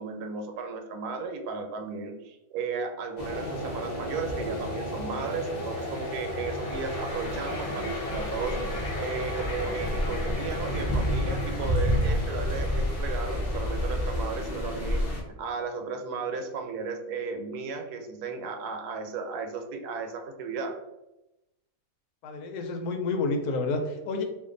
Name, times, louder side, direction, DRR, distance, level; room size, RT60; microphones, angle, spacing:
voice 1, 0.0-8.7 9.0-15.0 15.4-20.8, right 4 dB, 90° right, 5 dB, 1.1 m, -34 dB
sound 1, 3.2-15.2, left 1 dB, 50° left, 0.5 m, -30 dB
voice 2, 22.2-24.2, left 3 dB, 85° left, 4 dB, 1.1 m, -29 dB
2.5 x 2.4 x 3.7 m, 0.94 s
omnidirectional pair, 1.6 m